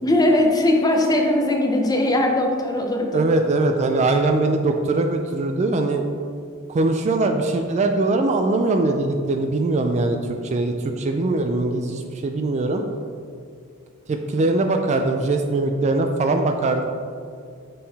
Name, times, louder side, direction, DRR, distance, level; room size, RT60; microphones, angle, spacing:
voice 1, 0.0-3.2, left 1 dB, 20° left, 2 dB, 0.6 m, -19 dB
voice 2, 3.1-6.0 6.7-10.2 10.4-12.8 14.1-16.8, right 2 dB, 30° right, 5 dB, 0.3 m, -21 dB
6.6 x 3.8 x 4.0 m, 2.2 s
head